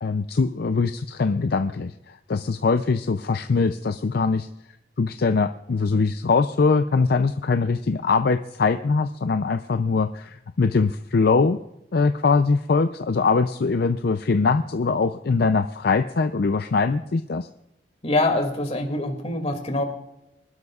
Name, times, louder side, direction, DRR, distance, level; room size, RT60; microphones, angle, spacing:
voice 1, 0.0-4.5 5.0-11.6 11.9-17.5, left 4 dB, 60° left, 9 dB, 0.5 m, -22 dB
voice 2, 18.0-19.8, left 2 dB, 35° left, 3 dB, 2.5 m, -24 dB
25.0 x 12.0 x 2.4 m, 0.89 s
head